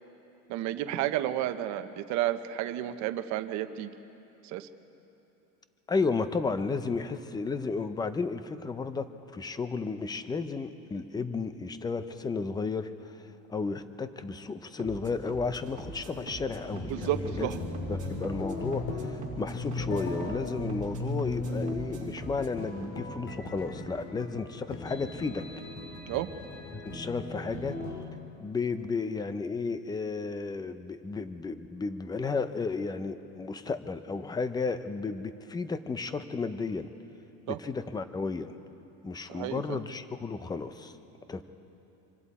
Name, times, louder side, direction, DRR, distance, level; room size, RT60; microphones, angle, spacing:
voice 1, 0.5-3.9 4.4-4.7 16.9-17.6 26.1-26.3 37.5-37.6 39.3-39.8, right 13 dB, 55° right, 9 dB, 1.0 m, -31 dB
voice 2, 5.9-13.2 13.5-17.5 17.9-25.5 26.7-27.8 28.4-36.9 37.5-38.5 39.0-41.0 41.3-41.4, left 4 dB, 10° left, 11 dB, 0.6 m, -33 dB
sound 1, 14.8-22.6, right 4 dB, 20° right, 2.3 m, -45 dB
sound 2, 15.5-28.1, left 2 dB, 60° left, 2.9 m, -37 dB
26.0 x 25.0 x 4.2 m, 2.9 s
cardioid pair, 150°, 34 cm